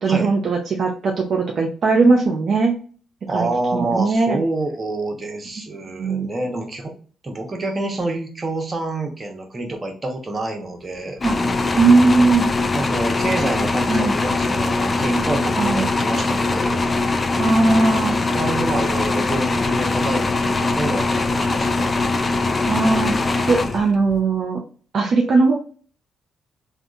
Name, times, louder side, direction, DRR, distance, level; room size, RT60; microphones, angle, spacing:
voice 1, 0.0-2.7 3.3-4.4 6.0-6.3 11.2-11.4 11.8-12.5 13.9-14.2 15.6-15.9 17.4-18.2 22.7-23.2 23.5-24.6 24.9-25.6, right 3 dB, 60° right, 2 dB, 0.4 m, -18 dB
voice 2, 3.3-6.9 7.2-11.2 12.7-16.8 18.1-21.9 22.2-22.4, right 2 dB, 30° right, 2 dB, 1.0 m, -27 dB
sound 1, 11.2-24.2, left 3 dB, 35° left, 0.4 m, -21 dB
3.4 x 2.3 x 2.5 m, 0.41 s
supercardioid pair, 60°, 0 cm